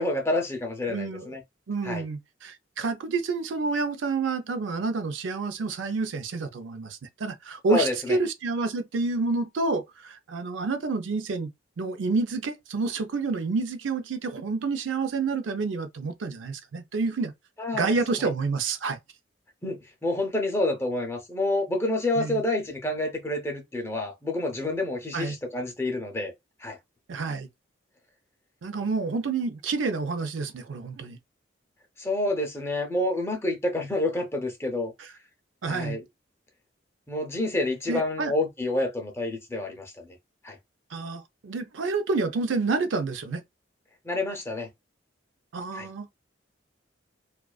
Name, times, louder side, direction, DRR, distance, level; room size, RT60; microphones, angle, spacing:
voice 1, 0.0-1.4 1.8-2.0 7.7-8.2 17.6-18.3 19.6-26.3 26.6-26.8 32.0-34.9 35.7-36.0 37.1-40.1 40.4-40.6 44.0-44.7 45.7-45.9, left 2 dB, 15° left, 0.5 m, -28 dB
voice 2, 0.9-1.3 1.7-11.5 11.8-17.3 17.7-19.0 22.2-22.4 25.1-25.4 27.1-27.5 28.6-31.2 35.0-35.1 35.6-36.0 37.9-38.3 40.9-43.4 45.5-46.1, right 4 dB, 80° right, 0.5 m, -29 dB
2.3 x 2.3 x 2.2 m
head